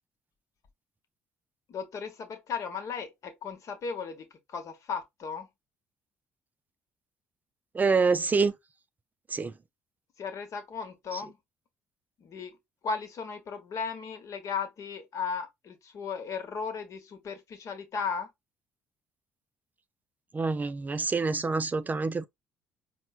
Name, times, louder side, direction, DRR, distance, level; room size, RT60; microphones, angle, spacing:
voice 1, 1.7-5.5 10.2-11.3 12.2-12.6 12.8-18.3, left 5 dB, 55° left, 0.9 m, -36 dB
voice 2, 7.7-8.5 9.3-9.5 11.1-11.2 20.3-22.3, right 4 dB, 25° right, 0.4 m, -26 dB
4.3 x 2.1 x 2.3 m
supercardioid pair, 65°, 6 cm